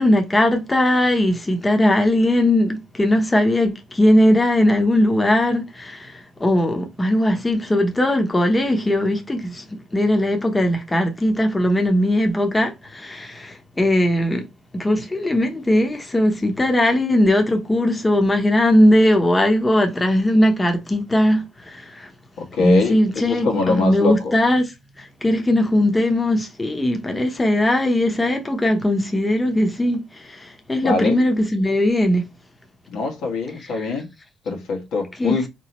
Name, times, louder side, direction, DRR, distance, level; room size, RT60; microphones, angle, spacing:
voice 1, 0.0-14.5 14.7-22.1 22.6-32.3 33.6-33.9 35.2-35.3, left 1 dB, 20° left, 0.8 m, -19 dB
voice 2, 22.4-24.3 30.8-31.2 32.9-34.1 34.4-35.5, left 3 dB, 85° left, 1.3 m, -23 dB
4.0 x 3.0 x 3.0 m
cardioid pair, 90°, 0 cm